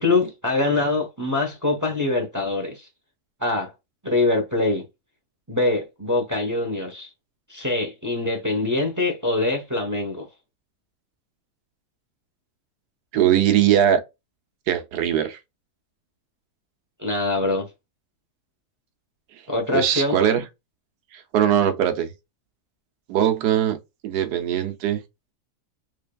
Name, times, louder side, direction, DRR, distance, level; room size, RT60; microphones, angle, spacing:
voice 1, 0.0-2.9 3.4-3.7 4.0-4.9 5.5-7.1 7.5-10.3 17.0-17.7 19.5-20.2, left 2 dB, 15° right, 0.6 m, -24 dB
voice 2, 13.1-14.0 14.7-15.4 19.7-20.4 21.1-22.1 23.1-23.8 24.0-25.0, right 10 dB, 85° right, 1.3 m, -20 dB
4.0 x 3.3 x 2.3 m
omnidirectional pair, 1.6 m